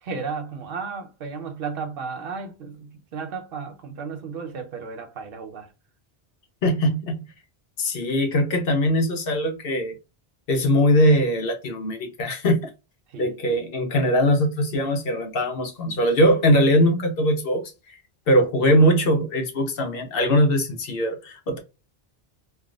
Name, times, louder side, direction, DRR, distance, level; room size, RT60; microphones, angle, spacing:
voice 1, 0.0-5.7 13.1-13.6, right 5 dB, 65° right, 0.9 m, -34 dB
voice 2, 6.6-7.2 7.8-9.9 10.5-12.7 13.2-18.0 18.3-21.6, equal, 65° left, 0.9 m, -21 dB
3.4 x 2.3 x 2.4 m
omnidirectional pair, 1.0 m